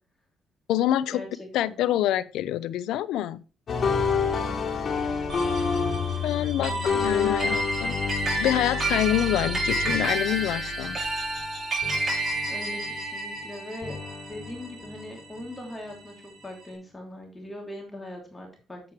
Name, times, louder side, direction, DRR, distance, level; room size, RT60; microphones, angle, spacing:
voice 1, 0.7-1.2 1.5-3.4 6.2-8.0 8.4-11.0, left 12 dB, 90° left, 17 dB, 0.6 m, -26 dB
sound 1, 3.7-11.6 11.8-13.4 13.8-15.4, left 5 dB, 50° left, 2.9 m, -29 dB
voice 2, 4.3-4.9 6.6-6.8 12.5-14.0 14.3-18.9, left 1 dB, 20° left, 1 dB, 2.9 m, -41 dB
sound 2, 5.3-15.9, right 2 dB, 35° right, 5.3 m, -31 dB
8.6 x 7.8 x 3.2 m, 0.34 s
cardioid pair, 90°, 0 cm